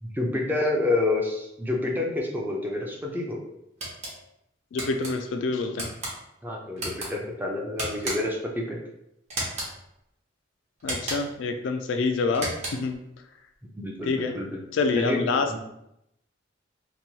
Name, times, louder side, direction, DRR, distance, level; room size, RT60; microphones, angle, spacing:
voice 1, 0.0-3.4 6.4-8.8 13.8-14.5 15.0-15.6, left 2 dB, 10° right, -1 dB, 0.4 m, -28 dB
sound 1, 3.8-4.1 4.8-5.1 5.8-6.1 6.8-7.1 7.8-8.4 9.3-9.7 10.8-11.4 12.3-12.9, right 1 dB, 40° right, 0.8 m, -33 dB
voice 2, 4.7-5.9 10.8-13.0 14.0-14.3 14.7-15.6, left 4 dB, 75° left, 6 dB, 0.3 m, -27 dB
2.9 x 2.2 x 2.7 m, 0.82 s
head